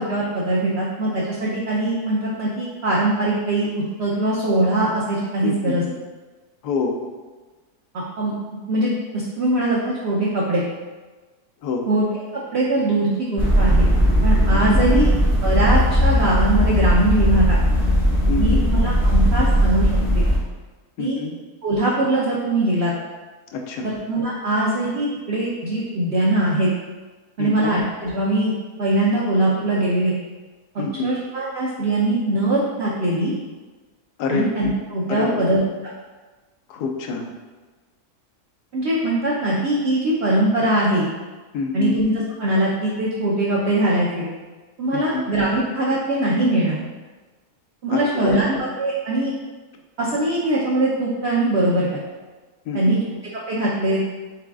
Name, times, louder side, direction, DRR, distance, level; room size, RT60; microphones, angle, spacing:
voice 1, 0.0-5.8 8.2-8.3 8.7-10.6 11.9-12.1 12.5-13.9 14.2-15.1 15.4-17.6 18.4-19.9 20.1-20.2 21.0-21.2 21.6-22.9 23.8-26.7 27.4-30.2 30.7-33.3 34.3-35.6 38.7-41.1 41.7-42.1 42.4-44.3 44.8-46.8 47.8-49.3 50.0-52.0 52.7-53.0 53.5-54.0, right 1 dB, 60° right, -5 dB, 0.7 m, -21 dB
voice 2, 5.4-5.9 6.6-6.9 11.6-11.9 14.9-15.0 18.3-18.6 21.0-21.3 23.5-23.9 27.4-27.7 30.8-31.1 34.2-34.5 35.1-35.5 36.7-37.3 41.5-42.0 44.9-45.2 47.9-48.5 52.7-53.0, left 4 dB, 80° left, 2 dB, 1.1 m, -26 dB
sound 1, 13.4-20.4, equal, ahead, 0.7 m, -18 dB
4.9 x 3.9 x 2.3 m, 1.3 s
omnidirectional pair, 1.7 m